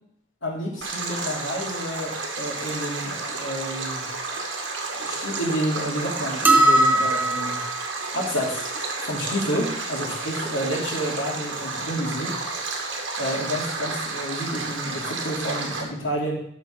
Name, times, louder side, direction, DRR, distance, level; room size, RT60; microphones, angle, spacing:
voice 1, 0.4-4.1 5.0-7.6 8.1-8.7 9.0-12.6 13.2-16.4, equal, 80° left, -3 dB, 3.0 m, -29 dB
Stream, 0.8-15.8, right 3 dB, 80° right, 1.7 m, -31 dB
sound 1, 6.4-7.8, right 1 dB, 10° right, 0.4 m, -19 dB
13.0 x 4.6 x 4.6 m, 0.70 s
head